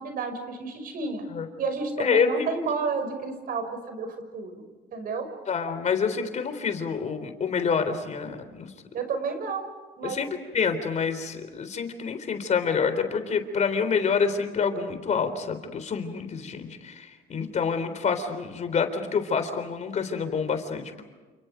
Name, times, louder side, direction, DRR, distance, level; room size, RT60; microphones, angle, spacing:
voice 1, 0.0-1.2 1.6-4.6 4.9-5.3 8.9-10.2, right 4 dB, 60° right, 7 dB, 5.9 m, -31 dB
voice 2, 2.0-2.5 5.5-8.7 10.0-21.0, left 6 dB, 45° left, 8 dB, 3.8 m, -27 dB
29.5 x 28.5 x 5.1 m, 1.3 s
cardioid pair, 110°, 17 cm